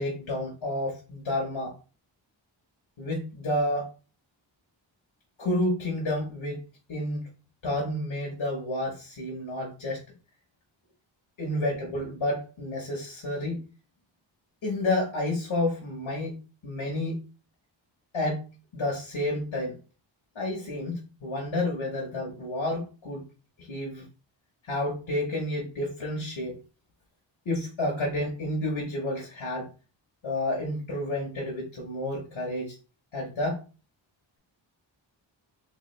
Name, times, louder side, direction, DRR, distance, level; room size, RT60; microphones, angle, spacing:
voice 1, 0.0-1.7 3.0-3.9 5.4-6.6 6.9-7.3 7.6-10.0 11.4-13.6 14.6-16.4 16.6-17.2 18.1-18.4 18.7-19.8 20.3-23.3 23.6-24.0 24.6-26.6 27.4-29.7 30.2-32.7 33.1-33.6, left 1 dB, 85° left, -2 dB, 1.3 m, -30 dB
3.4 x 3.3 x 3.3 m, 0.33 s
wide cardioid pair, 80°, 46 cm